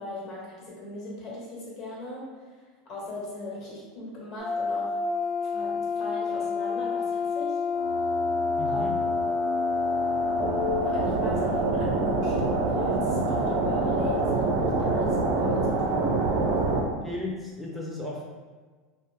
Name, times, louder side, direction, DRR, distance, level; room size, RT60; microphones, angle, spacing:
voice 1, 0.0-5.0 5.4-7.7 8.6-8.8 10.4-16.3, left 3 dB, 55° left, -5 dB, 1.2 m, -38 dB
sound 1, 4.4-16.8, equal, 70° right, 0.5 m, -26 dB
voice 2, 8.6-9.0 17.0-18.2, left 2 dB, 5° right, -3 dB, 0.4 m, -34 dB
2.5 x 2.3 x 3.2 m, 1.4 s
hypercardioid pair, 100°, 0 cm